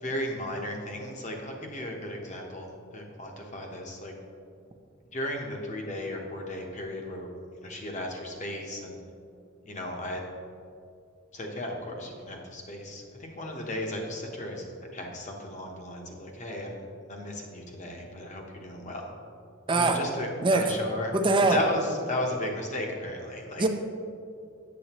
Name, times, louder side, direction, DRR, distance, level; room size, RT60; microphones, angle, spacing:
voice 1, 0.0-4.1 5.1-7.3 7.6-9.0 9.6-10.3 11.3-14.7 14.9-19.1 19.7-21.1 21.5-23.6, left 1 dB, 35° left, 1 dB, 1.0 m, -35 dB
voice 2, 19.7-20.0 20.4-20.7 21.1-21.6 23.6-23.7, right 3 dB, 25° right, 5 dB, 0.5 m, -22 dB
8.5 x 7.6 x 3.0 m, 2.3 s
head